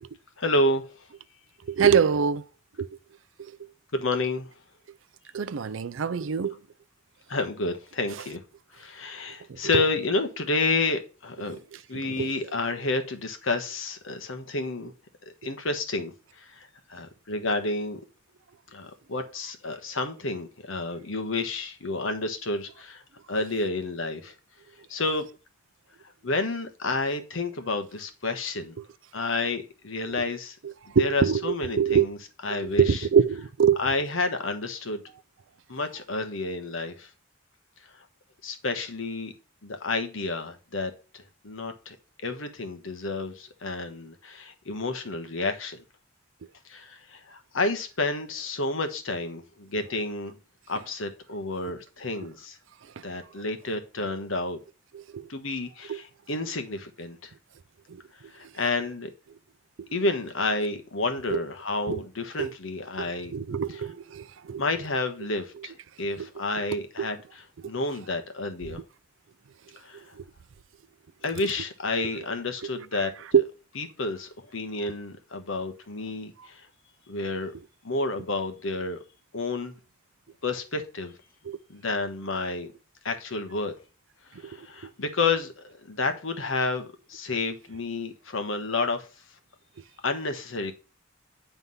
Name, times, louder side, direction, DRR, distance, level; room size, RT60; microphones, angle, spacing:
voice 1, 0.4-1.1 3.9-4.5 7.3-8.4 8.7-11.6 11.9-14.9 15.4-18.0 18.7-23.0 23.3-24.3 24.9-25.3 26.2-28.7 29.1-30.6 31.0-32.2 32.4-33.0 33.8-35.0 35.7-37.1 38.4-39.3 39.6-42.0 42.2-45.8 46.6-50.3 50.7-52.6 53.0-54.6 55.3-57.3 58.3-59.1 59.9-63.3 63.7-63.8 64.6-68.8 69.8-70.1 71.2-73.1 73.8-76.7 77.1-77.5 77.8-79.0 79.3-79.7 80.4-81.2 81.7-82.7 83.0-83.7 84.3-89.1 90.0-90.7, left 3 dB, 75° left, 1.2 m, -30 dB
voice 2, 1.7-2.4 2.8-2.9 5.3-6.5 9.5-9.8 11.9-12.3 30.6-32.1 32.5-33.8 54.9-55.3 55.9-56.0 57.9-58.0 59.8-59.9 61.3-61.4 61.9-62.0 62.4-62.5 63.0-64.6 66.2-66.3 66.7-67.1 70.2-70.3 73.3-73.4 81.5-81.6 84.5-84.6, right 7 dB, 70° right, 0.4 m, -25 dB
9.4 x 3.5 x 5.5 m
head